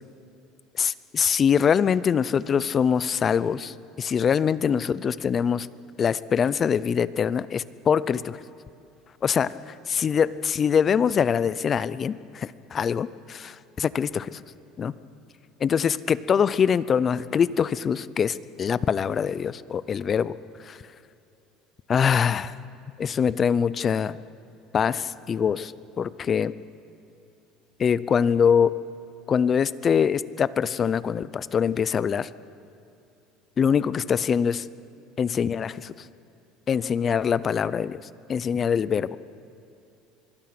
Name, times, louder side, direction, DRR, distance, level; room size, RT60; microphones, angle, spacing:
voice 1, 0.8-5.7 6.0-8.4 9.2-14.4 14.8-14.9 15.6-20.4 20.6-20.8 21.9-22.5 23.0-24.2 24.7-26.5 27.8-28.7 29.3-32.3 33.6-34.7 35.2-35.9 36.7-38.0 38.3-39.2, left 7 dB, 30° left, 17 dB, 0.6 m, -24 dB
24.5 x 22.0 x 6.0 m, 2.6 s
cardioid pair, 135°, 0 cm